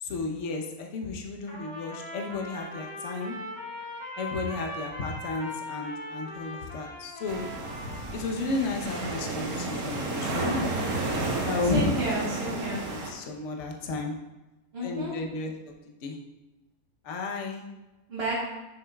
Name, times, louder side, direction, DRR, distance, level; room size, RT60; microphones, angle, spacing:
voice 1, 0.0-3.4 4.2-7.5 8.1-10.6 11.4-12.1 12.6-14.1 14.8-15.7 16.0-16.2 17.0-17.6, left 3 dB, 55° left, 1 dB, 1.2 m, -32 dB
Trumpet, 1.5-8.2, left 1 dB, 20° left, 2.8 m, -40 dB
sound 1, 7.3-13.1, right 2 dB, 75° right, 1.7 m, -32 dB
voice 2, 11.7-12.8 14.7-15.1 18.1-18.3, right 1 dB, 45° right, -6 dB, 1.5 m, -31 dB
9.9 x 7.1 x 2.3 m, 1.1 s
omnidirectional pair, 1.6 m